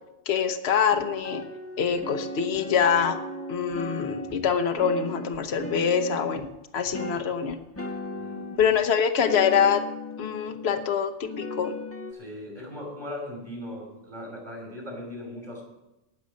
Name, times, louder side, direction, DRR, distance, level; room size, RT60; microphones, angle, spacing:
voice 1, 0.3-1.4 1.8-3.2 3.5-6.5 6.7-7.6 8.6-9.8 10.2-11.7, left 7 dB, 65° left, 7 dB, 1.2 m, -24 dB
sound 1, 0.9-6.5 6.9-8.9 9.2-10.9 11.3-12.1, left 1 dB, 15° left, 1.2 m, -37 dB
voice 2, 8.2-8.6 12.1-15.6, left 1 dB, 40° right, -1 dB, 5.2 m, -38 dB
19.0 x 7.0 x 5.2 m, 0.97 s
omnidirectional pair, 1.2 m